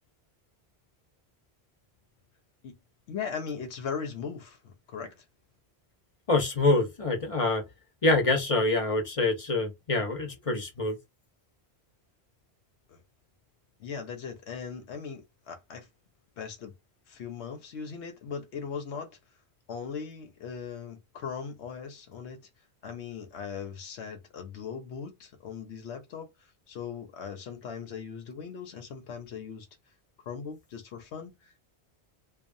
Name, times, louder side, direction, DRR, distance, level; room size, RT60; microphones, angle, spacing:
voice 1, 3.1-5.2 12.9-13.0 13.8-15.9 16.4-16.7 17.1-19.2 19.7-22.4 22.8-26.3 26.7-29.7 30.3-31.6, left 6 dB, 85° left, 1.0 m, -39 dB
voice 2, 6.3-7.6 8.0-11.0, left 2 dB, 35° left, 0.8 m, -26 dB
2.7 x 2.3 x 2.5 m
omnidirectional pair, 1.1 m